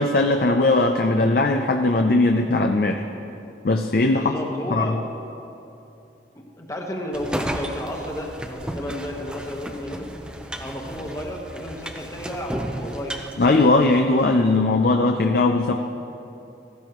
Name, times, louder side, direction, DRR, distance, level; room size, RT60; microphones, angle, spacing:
voice 1, 0.0-3.0 3.6-4.3 4.7-5.0 13.4-15.7, left 2 dB, 55° left, 4 dB, 0.5 m, -19 dB
voice 2, 4.1-5.0 6.6-10.1 10.6-13.1, equal, 15° left, 0 dB, 1.2 m, -32 dB
sound 1, 7.1-14.3, equal, 5° right, 0.6 m, -34 dB
15.5 x 14.5 x 3.1 m, 2.8 s
head